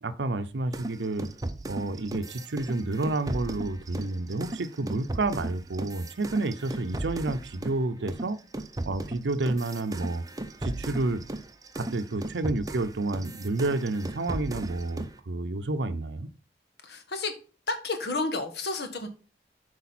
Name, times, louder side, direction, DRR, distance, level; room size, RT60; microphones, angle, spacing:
voice 1, 0.0-1.3 1.7-8.4 8.9-10.2 10.6-11.2 11.8-16.3, right 2 dB, 85° right, 0.6 m, -30 dB
sound 1, 0.7-7.8 8.1-15.2, right 2 dB, 20° right, 0.6 m, -37 dB
voice 2, 16.8-17.3 17.7-19.1, left 3 dB, 70° left, 1.5 m, -31 dB
8.2 x 4.8 x 4.2 m
head